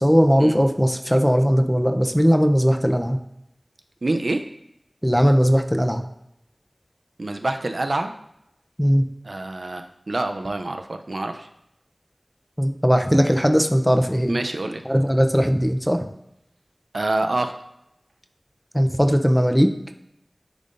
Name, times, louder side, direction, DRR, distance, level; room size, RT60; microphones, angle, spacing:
voice 1, 0.0-3.2 5.0-6.0 8.8-9.1 12.6-14.4 14.8-16.0 18.7-19.7, equal, ahead, 5 dB, 0.6 m, -18 dB
voice 2, 4.0-4.4 7.2-8.1 9.2-11.5 14.3-14.8 16.9-17.6, right 2 dB, 85° right, 6 dB, 0.4 m, -26 dB
10.0 x 3.7 x 2.5 m, 0.80 s
wide cardioid pair, 45°, 0 cm